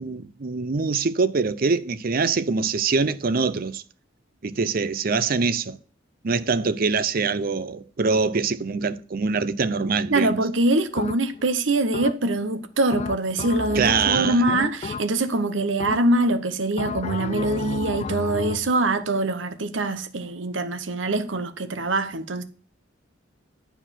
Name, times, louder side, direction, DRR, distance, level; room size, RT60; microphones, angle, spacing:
voice 1, 0.0-3.8 4.4-5.8 6.2-10.4 13.7-14.4, right 4 dB, 50° right, 0.6 m, -24 dB
voice 2, 10.1-22.4, right 2 dB, 85° right, 0.9 m, -24 dB
sound 1, 11.0-11.5 11.9-12.5 12.9-15.4 15.8-16.3 16.8-18.7, left 4 dB, 35° left, 0.3 m, -32 dB
9.1 x 4.6 x 5.8 m
head